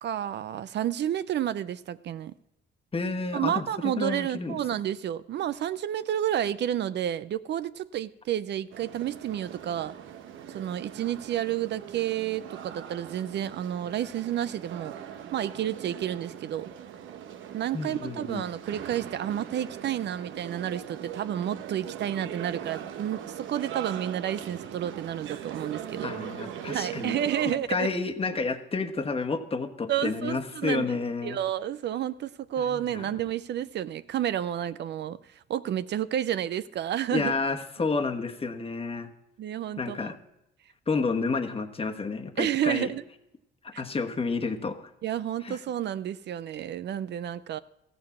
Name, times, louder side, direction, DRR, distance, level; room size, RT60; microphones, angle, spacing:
voice 1, 0.0-2.3 3.3-9.9 10.5-15.0 15.3-16.7 17.5-26.1 26.7-27.9 29.9-31.0 31.2-35.2 35.5-37.3 39.4-40.1 42.4-43.0 43.7-43.8 45.0-47.6, right 11 dB, 60° right, 0.5 m, -30 dB
voice 2, 2.9-4.6 17.7-18.4 26.0-27.2 27.7-31.4 32.6-33.1 37.1-39.1 39.8-40.1 40.9-42.9 43.8-44.9 45.4-45.6, left 4 dB, 30° left, 1.3 m, -30 dB
sound 1, 8.7-27.6, right 9 dB, 80° right, 0.9 m, -40 dB
14.5 x 7.0 x 7.3 m
cardioid pair, 90°, 20 cm